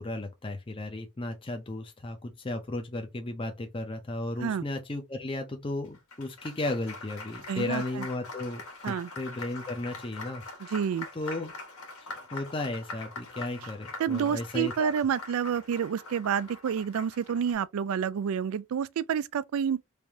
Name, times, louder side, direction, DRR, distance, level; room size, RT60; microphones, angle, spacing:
voice 1, 0.0-10.7 11.2-11.5 12.3-15.0, left 2 dB, 25° left, 0.6 m, -35 dB
Applause, 5.8-17.5, left 3 dB, 70° left, 1.5 m, -43 dB
voice 2, 7.5-8.1 8.8-9.1 10.6-11.1 14.0-19.8, right 7 dB, 70° right, 0.3 m, -29 dB
3.3 x 2.6 x 3.4 m
head